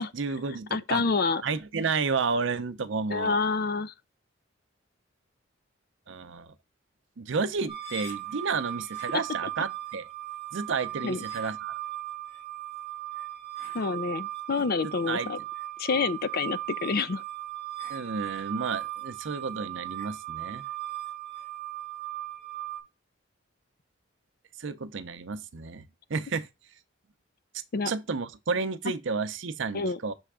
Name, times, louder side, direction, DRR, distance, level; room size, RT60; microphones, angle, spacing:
voice 1, 0.0-1.0 1.4-3.4 6.1-6.5 7.2-10.0 10.5-11.8 15.1-15.3 17.9-20.6 24.6-25.8 26.1-26.5 27.9-30.1, right 4 dB, 70° right, 0.6 m, -31 dB
voice 2, 0.7-1.4 3.1-3.9 11.0-11.2 13.7-15.4 15.8-17.2 27.7-27.9 29.7-30.0, left 4 dB, 50° left, 0.4 m, -28 dB
sound 1, 7.7-22.8, right 13 dB, 70° left, 2.0 m, -37 dB
6.3 x 3.4 x 4.8 m
head